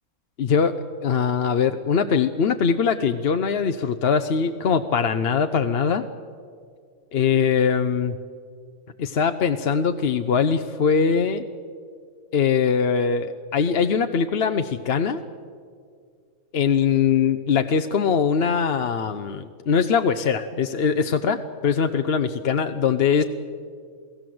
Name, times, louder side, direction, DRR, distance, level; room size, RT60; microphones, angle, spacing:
voice 1, 0.4-0.7 1.0-6.0 7.1-8.1 9.0-11.4 12.3-15.2 16.5-23.2, left 6 dB, 50° left, 8 dB, 0.9 m, -22 dB
28.5 x 17.5 x 7.8 m, 2.2 s
omnidirectional pair, 1.5 m